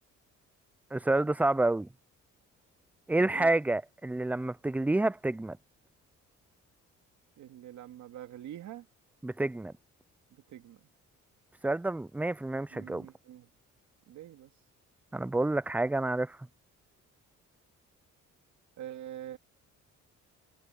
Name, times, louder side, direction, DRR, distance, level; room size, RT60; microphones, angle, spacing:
voice 1, 0.9-1.9 3.1-5.6 9.2-9.7 11.6-13.1 15.1-16.4, right 2 dB, 5° right, 0.4 m, -28 dB
voice 2, 3.1-3.5 7.4-8.9 10.3-10.8 12.7-13.5 14.1-14.5 18.8-19.4, right 12 dB, 75° right, 2.2 m, -45 dB
cardioid pair, 90°, 30 cm